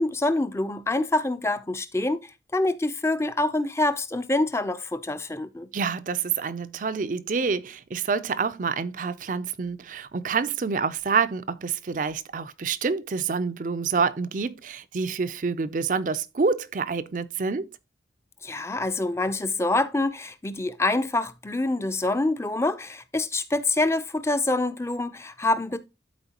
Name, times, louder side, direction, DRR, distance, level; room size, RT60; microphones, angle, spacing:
voice 1, 0.0-5.7 18.4-25.8, left 2 dB, 15° left, 0.5 m, -26 dB
voice 2, 5.7-17.7, right 5 dB, 45° right, 0.5 m, -27 dB
12.0 x 4.3 x 2.9 m
head